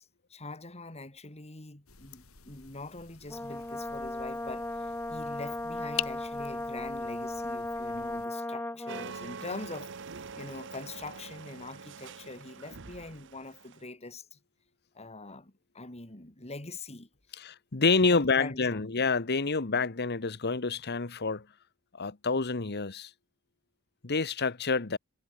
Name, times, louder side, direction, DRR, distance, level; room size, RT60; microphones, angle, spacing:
voice 1, 0.0-14.4 14.9-17.4 18.1-18.8, left 2 dB, 30° left, 3.2 m, -44 dB
sound 1, 1.9-8.3, left 11 dB, 80° left, 3.4 m, -44 dB
Brass instrument, 3.3-9.1, left 1 dB, 10° left, 1.0 m, -36 dB
sound 2, 8.9-13.8, right 5 dB, 60° right, 1.0 m, -44 dB
voice 2, 17.4-21.5 21.9-23.1 24.0-25.0, left 4 dB, 50° left, 1.3 m, -28 dB
head